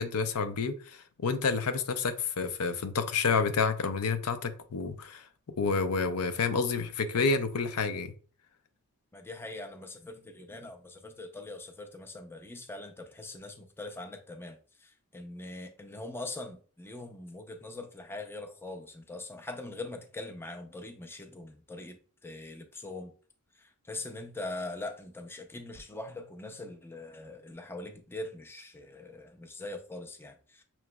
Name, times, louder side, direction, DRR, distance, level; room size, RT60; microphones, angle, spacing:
voice 1, 0.0-5.2 5.6-8.1, left 5 dB, 85° left, 0.5 m, -29 dB
voice 2, 9.1-22.0 22.2-23.1 23.6-30.6, left 2 dB, 10° left, 0.4 m, -42 dB
5.9 x 3.1 x 2.2 m
head